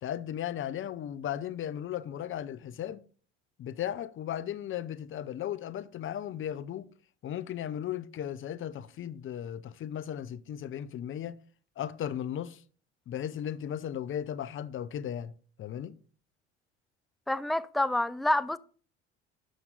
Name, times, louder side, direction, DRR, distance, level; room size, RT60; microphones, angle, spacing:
voice 1, 0.0-3.0 3.6-6.9 7.2-11.4 11.8-12.6 13.1-15.3 15.6-16.0, left 10 dB, 35° left, 0.6 m, -36 dB
voice 2, 17.3-18.6, left 1 dB, ahead, 0.3 m, -28 dB
11.5 x 6.0 x 3.9 m
hypercardioid pair, 65°, 35 cm